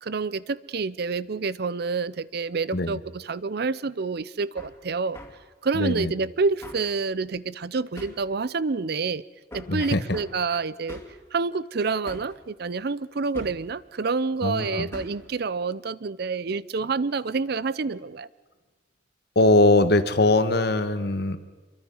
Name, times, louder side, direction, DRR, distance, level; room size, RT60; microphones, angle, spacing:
voice 1, 0.0-5.2 5.6-9.2 9.5-11.0 11.3-18.3, right 4 dB, 60° right, 18 dB, 0.6 m, -28 dB
Hammer, 4.6-4.7 5.1-5.4 6.6-6.9 8.0-8.3 9.5-9.8 10.1-10.4 10.9-11.2 12.0-12.4 13.3-13.7 14.9-15.2, left 1 dB, 15° left, 2.4 m, -41 dB
voice 2, 5.7-6.1 9.7-10.0 14.4-14.9 19.3-21.4, left 2 dB, 60° left, 10 dB, 1.4 m, -21 dB
26.5 x 23.0 x 5.5 m, 1.3 s
head